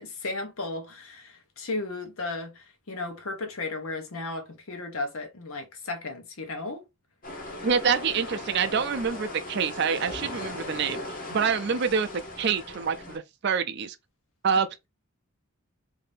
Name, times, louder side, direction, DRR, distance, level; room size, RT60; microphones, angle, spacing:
voice 1, 0.0-6.8, left 2 dB, 75° left, 0.9 m, -35 dB
sound 1, 7.2-13.2, left 1 dB, 40° left, 0.8 m, -38 dB
voice 2, 7.6-14.0 14.4-14.7, right 6 dB, 50° right, 0.4 m, -26 dB
2.7 x 2.6 x 3.3 m
head